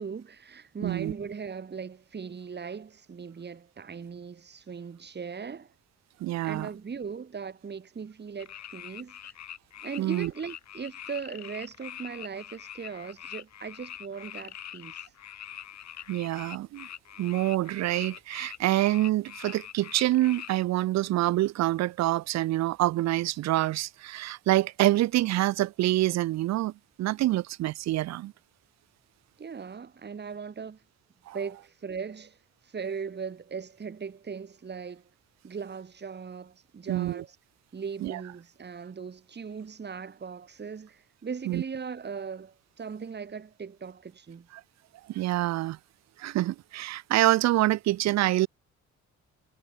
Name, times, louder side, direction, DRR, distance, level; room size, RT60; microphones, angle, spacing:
voice 1, 0.0-5.7 6.4-9.3 9.8-15.1 29.4-30.8 31.3-32.4 32.6-35.1 35.4-37.4 37.7-44.5, right 6 dB, 35° right, 2.3 m, -39 dB
voice 2, 0.8-1.1 6.2-6.7 10.0-10.3 16.1-16.9 17.2-26.7 27.0-28.3 31.3-31.4 36.9-37.2 38.0-38.2 41.5-41.6 45.1-45.8 46.2-48.5, right 15 dB, 65° right, 0.5 m, -26 dB
sound 1, 8.4-20.6, left 10 dB, 65° left, 2.4 m, -44 dB
cardioid pair, 90°, 30 cm